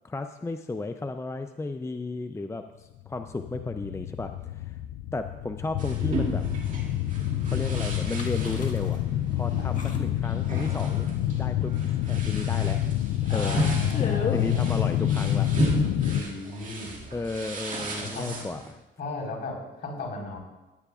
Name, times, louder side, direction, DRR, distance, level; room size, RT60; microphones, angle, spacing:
voice 1, 0.0-4.8 5.1-6.4 7.5-9.0 9.3-11.1 11.4-11.7 12.1-12.8 13.3-15.5 17.1-18.6, left 3 dB, 15° left, 7 dB, 0.4 m, -34 dB
sound 1, 3.1-16.2, left 12 dB, 85° left, 0.4 m, -28 dB
sound 2, 5.8-18.7, right 2 dB, 40° right, 2.2 m, -34 dB
sound 3, 8.2-9.0 9.4-9.5 9.7-10.2 10.6-11.0 11.3-11.9 12.3-12.4 12.6-12.7 13.2-13.5 13.9-16.2, left 5 dB, 40° left, 1.5 m, -36 dB
voice 2, 13.3-14.7 16.0-16.9 18.0-18.5 19.0-20.4, left 3 dB, 55° left, -3 dB, 4.2 m, -36 dB
16.5 x 9.9 x 2.4 m, 1.1 s
cardioid pair, 90°, 20 cm